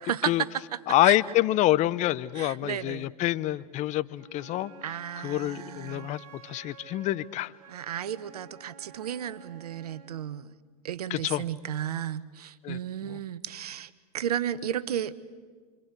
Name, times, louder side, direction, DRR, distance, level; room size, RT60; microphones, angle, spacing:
voice 1, 0.0-1.2 2.3-3.1 4.8-6.1 7.7-10.5 10.8-15.2, right 10 dB, 85° right, 15 dB, 1.1 m, -33 dB
voice 2, 0.9-4.7 5.2-7.5 11.1-11.4 12.6-12.8 13.1-13.2, left 15 dB, 40° left, 18 dB, 0.8 m, -26 dB
Wind instrument woodwind instrument, 4.2-10.2, right 5 dB, 45° right, 4.0 m, -51 dB
26.0 x 26.0 x 8.2 m, 1.5 s
hypercardioid pair, 110°, 19 cm